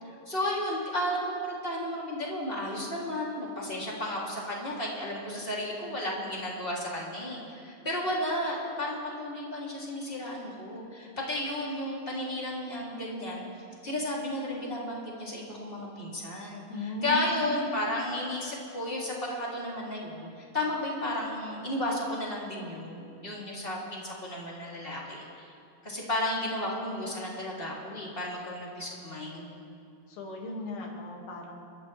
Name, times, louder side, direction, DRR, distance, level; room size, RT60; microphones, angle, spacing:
voice 1, 0.1-13.4 13.8-25.5 25.8-29.5, left 1 dB, 15° left, -5 dB, 2.6 m, -33 dB
voice 2, 16.7-17.5 30.1-31.5, equal, 85° left, -1 dB, 4.2 m, -37 dB
29.0 x 14.0 x 3.3 m, 2.5 s
omnidirectional pair, 4.4 m